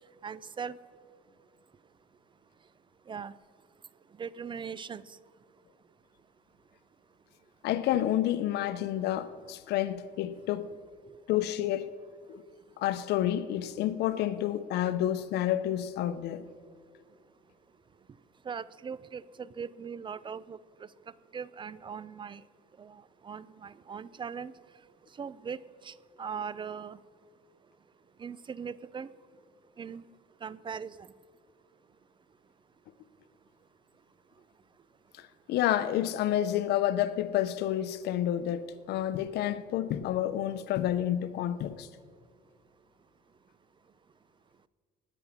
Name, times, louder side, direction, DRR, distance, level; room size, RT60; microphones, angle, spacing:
voice 1, 0.2-0.8 3.1-3.3 4.2-5.2 18.5-20.6 21.3-22.4 22.8-24.5 25.2-27.0 28.2-29.1 29.8-30.0 30.4-31.1, right 6 dB, 30° right, 0.4 m, -40 dB
voice 2, 7.6-10.7 11.3-11.9 12.3-12.4 12.8-16.4 35.1-41.9, left 12 dB, 80° left, 0.8 m, -29 dB
19.0 x 7.1 x 7.4 m
cardioid pair, 110°, 17 cm